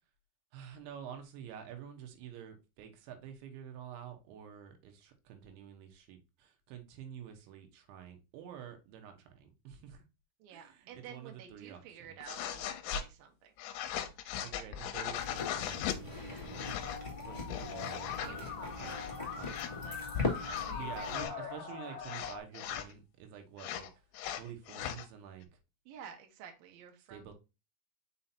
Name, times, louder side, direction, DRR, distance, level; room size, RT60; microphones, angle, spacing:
voice 1, 0.5-10.1 10.5-12.2 14.4-16.8 17.2-19.9 20.7-23.9 24.3-25.6 27.1-27.3, right 9 dB, 85° right, 3.4 m, -49 dB
voice 2, 10.4-13.5 17.8-20.0 20.7-21.5 21.9-22.0 25.9-27.3, right 8 dB, 65° right, 2.7 m, -52 dB
sound 1, 12.2-13.1 13.6-16.0 16.4-17.0 17.4-18.3 18.7-19.1 19.5-19.7 20.4-21.3 22.0-22.9 23.6-25.1, left 10 dB, 90° left, 2.9 m, -39 dB
sound 2, 15.1-21.3, left 4 dB, 15° left, 1.1 m, -40 dB
Musical instrument, 16.8-22.4, left 6 dB, 65° left, 2.4 m, -43 dB
6.3 x 5.6 x 2.8 m
omnidirectional pair, 5.1 m